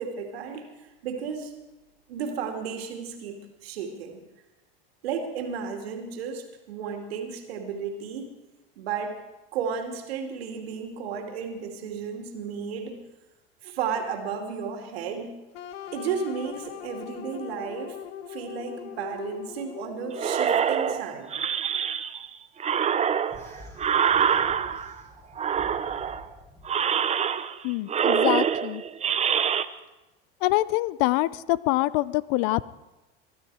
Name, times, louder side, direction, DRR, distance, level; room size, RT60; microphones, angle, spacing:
voice 1, 0.0-1.5 2.1-3.4 3.6-4.2 5.0-8.3 8.8-9.2 9.5-13.0 13.6-15.3 15.9-18.0 18.3-21.3, right 6 dB, 80° right, 3 dB, 2.5 m, -33 dB
sound 1, 15.5-20.5, left 9 dB, 75° left, 1.2 m, -40 dB
sound 2, 20.2-22.3 22.6-25.0 25.4-26.3 26.6-27.6 27.9-29.6, right 8 dB, 20° right, 0.6 m, -25 dB
sound 3, 23.3-26.7, left 2 dB, 10° left, 3.9 m, -48 dB
voice 2, 27.6-28.8 30.4-32.7, left 18 dB, 60° left, 20 dB, 0.6 m, -25 dB
22.0 x 12.0 x 4.8 m, 1.1 s
hypercardioid pair, 95°, 30 cm